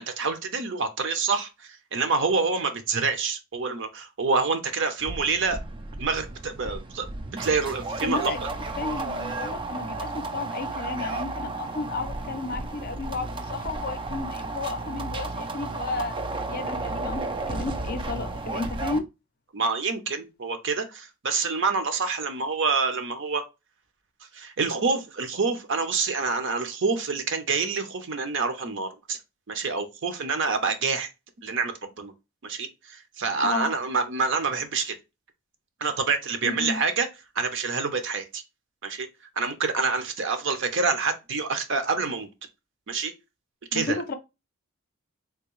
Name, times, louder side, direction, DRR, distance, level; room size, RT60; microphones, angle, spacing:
voice 1, 0.0-8.4 19.5-23.4 24.3-29.2 29.5-31.1 31.4-32.1 32.4-34.9 35.8-37.1 37.3-38.4 38.8-39.1 39.4-42.3 42.9-43.1 43.7-44.1, right 4 dB, 55° right, 0.7 m, -27 dB
sound 1, 5.0-19.0, right 2 dB, 20° right, 0.3 m, -33 dB
voice 2, 8.0-8.4 8.8-16.2 16.5-19.1 33.4-33.7 36.4-36.8 43.7-44.1, left 3 dB, 45° left, 0.5 m, -32 dB
3.5 x 2.7 x 3.0 m
head